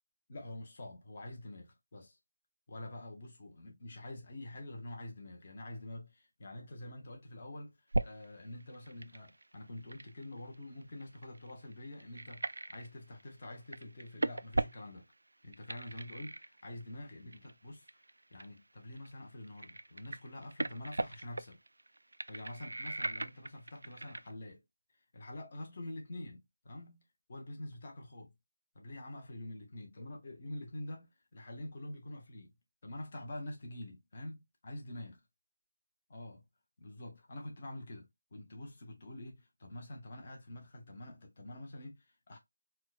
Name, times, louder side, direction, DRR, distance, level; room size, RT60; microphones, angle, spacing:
voice 1, 0.3-2.2 2.7-7.8 8.0-15.1 15.4-17.9 18.3-21.6 22.3-24.6 25.1-27.0 27.3-28.3 28.7-32.6 32.8-35.2 36.1-36.4 36.8-42.4, left 1 dB, 25° left, 0.7 m, -46 dB
sound 1, 7.9-8.2 8.6-12.9 13.2-13.4 13.7-15.1 15.5-16.9 17.3-17.5 17.9-18.6 18.9-19.1 19.4-24.3, right 2 dB, 80° right, 0.3 m, -38 dB
4.2 x 2.1 x 2.4 m
figure-of-eight pair, 180°, 0 cm